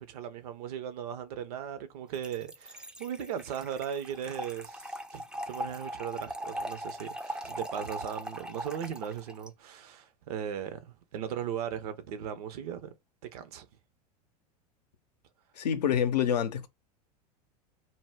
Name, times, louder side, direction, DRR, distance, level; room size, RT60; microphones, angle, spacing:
voice 1, 0.0-12.9 13.2-13.7, right 9 dB, 70° right, 0.6 m, -38 dB
Trickle dribble / Fill (with liquid), 2.1-9.5, right 1 dB, 5° right, 0.3 m, -40 dB
voice 2, 15.6-16.7, left 9 dB, 85° left, 0.5 m, -27 dB
2.1 x 2.1 x 3.4 m
hypercardioid pair, 95°, 20 cm